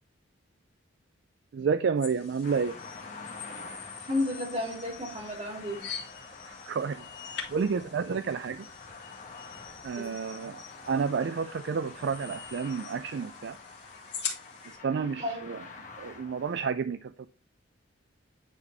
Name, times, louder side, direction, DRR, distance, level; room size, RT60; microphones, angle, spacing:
voice 1, 1.5-2.8 6.5-7.1 7.5-8.7 9.8-13.6 14.8-15.6 16.0-17.3, right 5 dB, 60° right, 0.3 m, -30 dB
sound 1, 2.0-14.8, left 7 dB, 55° left, 2.4 m, -44 dB
sound 2, 2.4-16.7, left 4 dB, 35° left, 1.1 m, -47 dB
voice 2, 4.1-5.8 10.0-10.1 15.2-15.5, left 1 dB, 35° right, 2.8 m, -32 dB
9.8 x 4.1 x 3.4 m
head